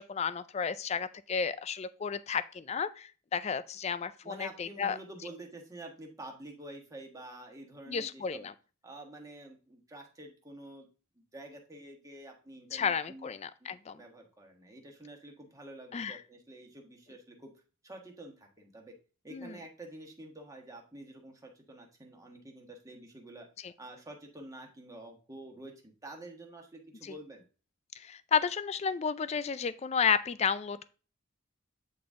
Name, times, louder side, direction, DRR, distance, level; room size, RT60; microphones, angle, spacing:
voice 1, 0.0-5.0 7.9-8.5 12.7-14.0 15.9-16.2 19.3-19.6 23.6-23.7 27.0-27.1 28.0-30.9, left 6 dB, 30° left, 14 dB, 0.3 m, -32 dB
voice 2, 4.2-8.5 8.8-10.9 11.3-13.3 13.6-17.5 17.8-18.9 19.2-23.5 23.8-27.4, right 1 dB, 15° right, 1 dB, 1.3 m, -48 dB
8.7 x 4.0 x 3.6 m, 0.35 s
head